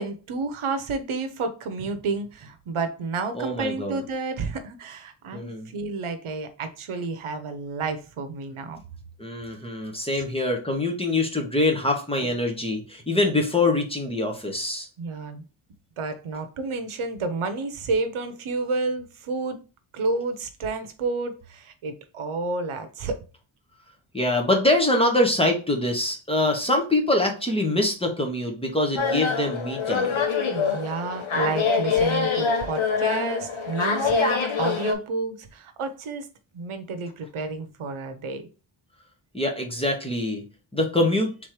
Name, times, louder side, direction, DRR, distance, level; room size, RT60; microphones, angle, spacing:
voice 1, 0.0-8.8 9.5-9.6 15.0-15.4 16.0-19.6 19.9-23.2 30.5-36.3 36.5-38.5, right 3 dB, 75° right, 8 dB, 0.8 m, -30 dB
voice 2, 3.3-4.0 5.3-5.7 9.2-14.9 24.1-30.1 39.3-40.4 40.7-41.4, left 2 dB, 10° left, 2 dB, 1.1 m, -24 dB
sound 1, 29.0-34.9, left 5 dB, 70° left, 1.2 m, -25 dB
3.6 x 3.1 x 4.6 m, 0.34 s
wide cardioid pair, 100°, 50 cm